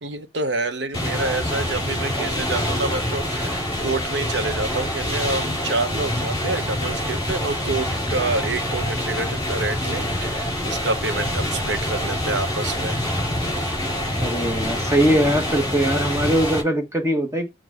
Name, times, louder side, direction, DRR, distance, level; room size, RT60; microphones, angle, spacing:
voice 1, 0.0-13.0 13.4-13.6, right 3 dB, 85° right, 1.1 m, -28 dB
sound 1, 0.9-16.6, left 1 dB, 20° left, 4.3 m, -26 dB
voice 2, 14.2-17.5, right 1 dB, 15° right, 1.3 m, -21 dB
8.1 x 3.7 x 5.1 m
head